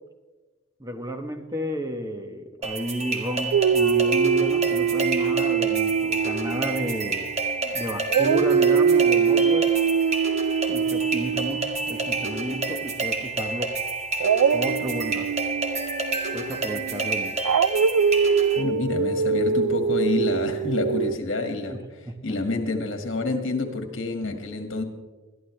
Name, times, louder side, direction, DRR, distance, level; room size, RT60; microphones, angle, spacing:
voice 1, 0.8-7.3 7.7-9.7 10.7-13.8 14.5-15.3 16.3-17.4 21.7-22.4, right 1 dB, 15° right, 6 dB, 1.1 m, -32 dB
sound 1, 2.6-18.6, right 3 dB, 30° right, 1.7 m, -29 dB
Dog, 3.5-7.7 8.1-13.1 14.2-21.2, right 6 dB, 85° right, 0.3 m, -24 dB
voice 2, 18.6-21.8 22.2-24.8, left 2 dB, 60° left, 5 dB, 1.9 m, -27 dB
21.0 x 13.0 x 3.3 m, 1.3 s
head